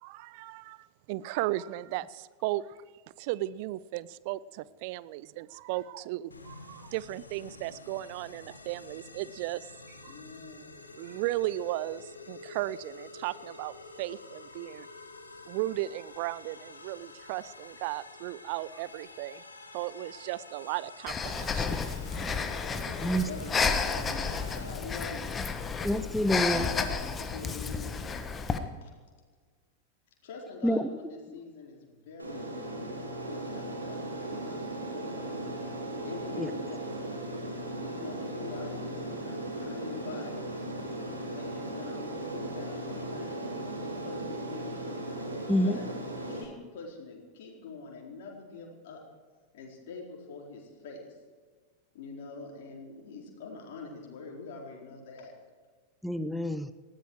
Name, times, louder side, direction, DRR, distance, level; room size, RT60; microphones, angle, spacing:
voice 1, 0.0-2.8 3.2-10.2 11.0-14.9 15.5-19.4 19.7-22.3, right 16 dB, 45° right, 19 dB, 0.5 m, -36 dB
sound 1, 6.3-24.7, left 3 dB, 80° left, 1.6 m, -49 dB
voice 2, 10.1-10.7 22.9-25.4 26.2-28.1 28.8-28.9 30.2-34.6 34.9-35.2 36.0-37.1 37.9-40.5 41.3-44.9 45.3-46.0 46.3-49.0 49.5-51.1 51.9-55.3, left 4 dB, 55° left, 0 dB, 4.5 m, -44 dB
Breathing, 21.1-28.6, left 5 dB, 20° left, 1.4 m, -31 dB
voice 3, 25.8-26.7 30.6-30.9 36.3-36.5 45.5-45.8 56.0-56.7, equal, ahead, 12 dB, 0.8 m, -27 dB
Aircraft, 32.2-46.4, right 1 dB, 85° right, 3.6 m, -37 dB
19.0 x 15.0 x 4.8 m, 1.5 s
figure-of-eight pair, 90°, 0 cm